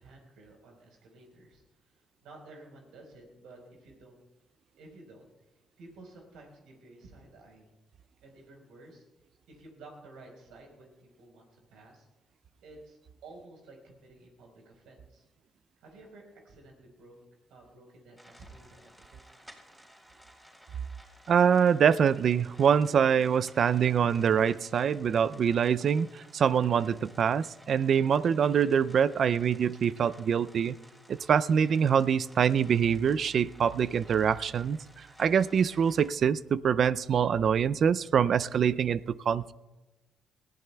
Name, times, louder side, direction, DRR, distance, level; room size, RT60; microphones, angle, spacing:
voice 1, 0.0-1.6 1.9-4.2 4.8-5.3 5.8-7.7 8.2-9.0 9.5-12.1 12.6-15.3 15.8-17.2 17.5-19.0, right 2 dB, 90° right, 1 dB, 4.1 m, -52 dB
sound 1, 18.2-36.1, equal, 5° right, 3.9 m, -56 dB
voice 2, 21.3-30.8 31.1-34.8 35.2-39.0 39.3-39.5, right 7 dB, 55° right, 18 dB, 0.4 m, -25 dB
20.5 x 15.5 x 2.3 m, 1.1 s
cardioid pair, 90°, 0 cm